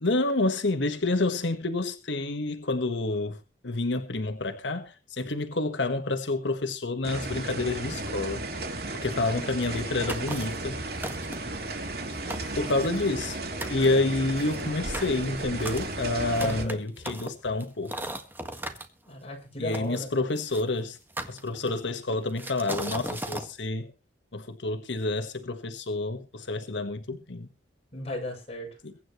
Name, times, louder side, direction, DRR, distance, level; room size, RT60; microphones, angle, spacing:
voice 1, 0.0-3.4 3.6-8.4 8.9-10.8 12.6-13.4 13.7-18.0 19.6-21.0 21.3-23.9 24.3-27.5 28.8-28.9, left 2 dB, 90° left, 1.4 m, -28 dB
sound 1, 7.0-16.7, right 2 dB, 60° right, 2.9 m, -34 dB
sound 2, 10.1-10.6 11.0-11.6 12.0-12.1 12.3-13.3 13.6-13.9 14.4-18.9 19.7-20.6 21.2-21.9 22.4-23.5, right 1 dB, 10° right, 1.6 m, -37 dB
voice 2, 16.4-16.8 19.1-20.2 27.9-28.8, left 1 dB, 35° left, 7.0 m, -36 dB
22.5 x 9.8 x 3.1 m
head